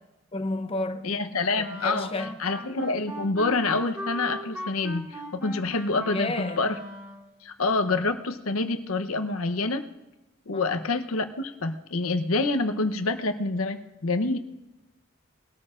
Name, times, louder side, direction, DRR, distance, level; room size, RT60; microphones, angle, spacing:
voice 1, 0.3-1.1 1.6-2.5 6.1-6.6 10.5-10.8, left 2 dB, 25° left, 0.6 m, -32 dB
voice 2, 1.0-2.1 2.4-6.8 7.4-9.8 10.5-14.4, left 3 dB, 85° left, 0.9 m, -27 dB
Wind instrument woodwind instrument, 1.6-7.3, left 1 dB, 10° right, 2.0 m, -38 dB
20.5 x 13.0 x 2.5 m
head